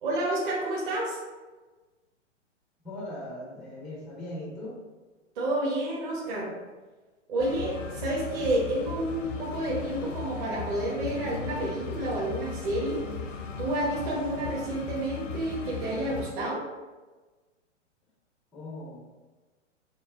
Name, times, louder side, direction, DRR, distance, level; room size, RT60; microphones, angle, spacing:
voice 1, 0.0-1.2 5.3-6.5 7.3-13.0 13.6-16.6, right 1 dB, 45° right, -5 dB, 1.0 m, -30 dB
voice 2, 2.8-4.8 18.5-19.0, left 1 dB, ahead, -3 dB, 0.4 m, -39 dB
sound 1, 7.4-16.3, left 5 dB, 80° left, 0.7 m, -37 dB
5.7 x 2.0 x 3.4 m, 1.3 s
hypercardioid pair, 125°, 37 cm